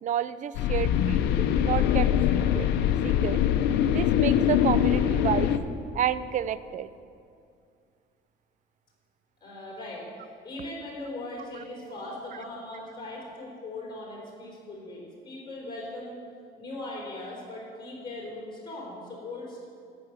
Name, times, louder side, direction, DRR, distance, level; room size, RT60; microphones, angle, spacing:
voice 1, 0.0-2.7 3.0-3.4 3.9-5.5 5.9-6.9, right 9 dB, 50° right, 15 dB, 0.5 m, -30 dB
sound 1, 0.5-5.6, left 10 dB, 85° left, 0.7 m, -23 dB
voice 2, 9.4-10.1 10.4-16.2 16.6-19.7, left 2 dB, 30° left, -4 dB, 3.9 m, -39 dB
14.5 x 6.1 x 8.1 m, 2.3 s
cardioid pair, 110°, 17 cm